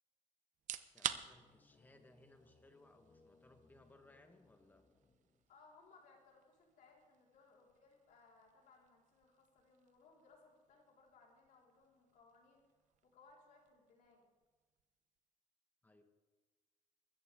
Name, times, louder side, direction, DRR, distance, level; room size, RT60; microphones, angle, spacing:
sound 1, 0.5-15.4, right 11 dB, 65° right, 0.8 m, -52 dB
voice 1, 0.9-4.8 15.8-16.0, left 2 dB, 15° left, 6 dB, 1.3 m, -65 dB
sound 2, 1.0-5.7, left 3 dB, 30° left, 1.3 m, -71 dB
voice 2, 5.5-12.6 13.0-14.3, left 4 dB, 75° left, -2 dB, 4.4 m, -66 dB
23.5 x 13.5 x 3.6 m, 1.3 s
cardioid pair, 150°, 14 cm